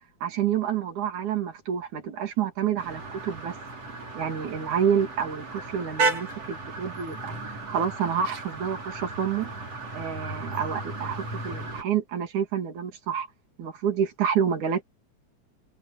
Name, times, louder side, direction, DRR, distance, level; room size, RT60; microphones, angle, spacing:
voice 1, 0.2-3.5 4.1-9.5 9.9-13.3 13.6-14.8, right 8 dB, 75° right, 4.3 m, -28 dB
sound 1, 2.8-11.8, right 3 dB, 55° right, 6.3 m, -34 dB
omnidirectional pair, 3.5 m